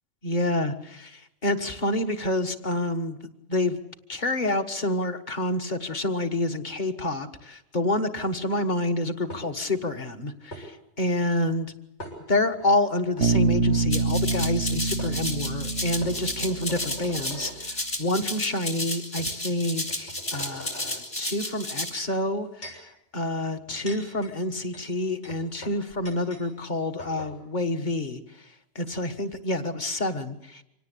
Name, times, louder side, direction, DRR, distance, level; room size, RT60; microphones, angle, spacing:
voice 1, 0.2-3.2 3.5-3.8 4.1-11.7 12.3-28.2 28.8-30.6, left 2 dB, 40° left, 7 dB, 1.6 m, -28 dB
sound 1, 9.3-9.8 10.5-10.7 12.0-12.7 13.1-13.3 14.6-14.7 15.0-15.2 16.0-17.6 18.4-18.5 19.2-19.3 19.8-21.0 22.1-22.9 23.5-26.5 26.7-26.8 27.0-27.3, equal, 80° left, 7.0 m, -42 dB
Bass guitar, 13.2-17.3, right 4 dB, 85° right, 1.5 m, -26 dB
Rattle (instrument), 13.9-21.9, left 1 dB, 60° left, 4.5 m, -32 dB
25.5 x 18.0 x 8.4 m, 0.85 s
omnidirectional pair, 1.2 m